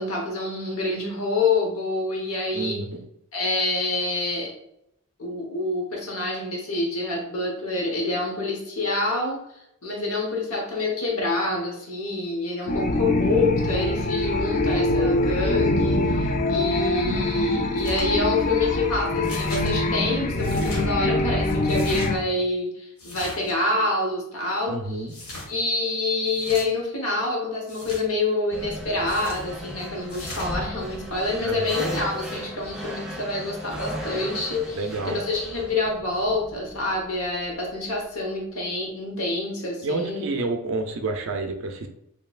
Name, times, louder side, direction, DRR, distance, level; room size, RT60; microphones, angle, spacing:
voice 1, 0.0-2.8 3.3-4.5 5.2-9.4 9.8-25.1 25.5-40.3, left 2 dB, 70° left, 0 dB, 1.1 m, -27 dB
voice 2, 2.5-3.0 24.7-25.1 31.4-31.8 34.7-35.2 39.8-41.9, right 3 dB, 60° right, 5 dB, 0.5 m, -29 dB
sound 1, 12.7-22.2, left 2 dB, 35° left, 0.4 m, -24 dB
sound 2, 17.8-18.1 19.2-19.7 20.4-20.8 21.6-22.1 23.0-23.5 25.1-25.5 26.3-26.6 27.7-28.0 29.1-29.4 30.1-30.5, left 1 dB, 90° left, 1.4 m, -38 dB
sound 3, 28.5-37.1, equal, 5° right, 0.7 m, -36 dB
4.3 x 3.2 x 2.4 m, 0.79 s
head